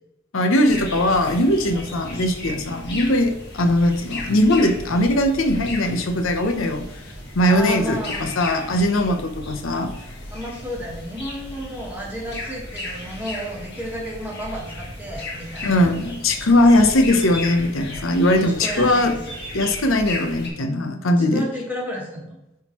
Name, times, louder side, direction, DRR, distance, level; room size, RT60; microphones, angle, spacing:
voice 1, 0.3-6.8 7.3-9.9 15.6-19.1 19.5-21.5, left 1 dB, 75° left, 6 dB, 0.8 m, -20 dB
sound 1, 0.6-20.5, left 2 dB, 55° left, 1.8 m, -35 dB
voice 2, 7.5-8.3 10.3-15.8 16.1-16.2 18.4-19.4 21.3-22.4, equal, 10° right, -3 dB, 1.5 m, -32 dB
10.0 x 3.7 x 3.0 m, 0.88 s
head